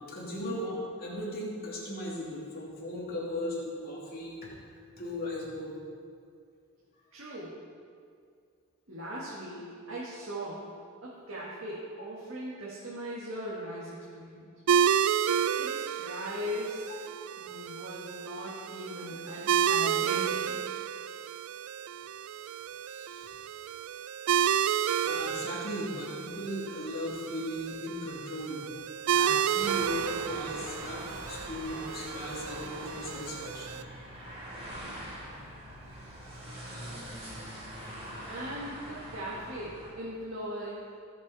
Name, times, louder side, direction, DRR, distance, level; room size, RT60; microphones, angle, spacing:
voice 1, 0.0-4.5 5.0-5.7 22.9-23.3 25.0-28.7 29.1-33.9, left 1 dB, 45° left, -6 dB, 3.0 m, -37 dB
voice 2, 7.1-7.6 8.9-10.7 11.0-14.5 15.6-17.0 17.4-20.6 38.3-40.9, equal, 60° right, -6 dB, 1.9 m, -39 dB
sound 1, 14.7-33.8, right 8 dB, 75° right, 0.4 m, -31 dB
sound 2, 29.6-39.9, equal, 30° right, 3.5 m, -43 dB
18.0 x 7.3 x 4.2 m, 2.2 s
head